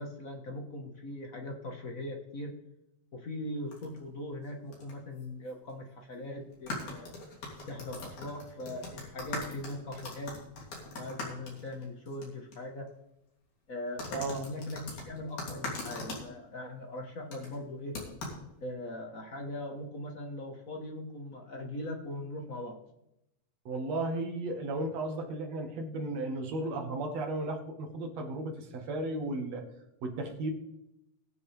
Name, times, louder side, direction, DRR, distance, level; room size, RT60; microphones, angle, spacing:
voice 1, 0.0-2.5 3.1-7.1 7.7-10.3 10.9-12.9 13.7-18.0 18.6-22.8, left 1 dB, 45° left, 2 dB, 1.1 m, -40 dB
sound 1, 3.7-4.0 4.7-4.9 5.2-5.3 6.5-12.2 12.5-12.6 14.0-16.2 17.3-17.6 17.9-18.4, left 2 dB, 75° left, 4.4 m, -40 dB
voice 2, 23.7-29.7 30.0-30.5, right 2 dB, 60° right, 3 dB, 2.8 m, -34 dB
21.0 x 7.3 x 3.4 m, 0.84 s
omnidirectional pair, 3.4 m